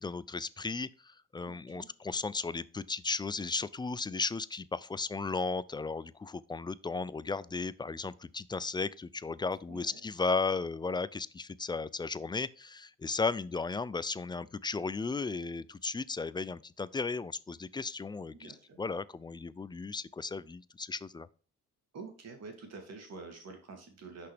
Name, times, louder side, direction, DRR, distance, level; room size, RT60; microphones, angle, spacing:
voice 1, 0.0-18.5 18.8-21.3, left 4 dB, 15° left, 0.3 m, -35 dB
voice 2, 1.4-1.9 9.7-10.0 18.3-18.8 21.9-24.3, right 4 dB, 55° right, 2.5 m, -47 dB
6.0 x 5.6 x 3.4 m
cardioid pair, 90°, 30 cm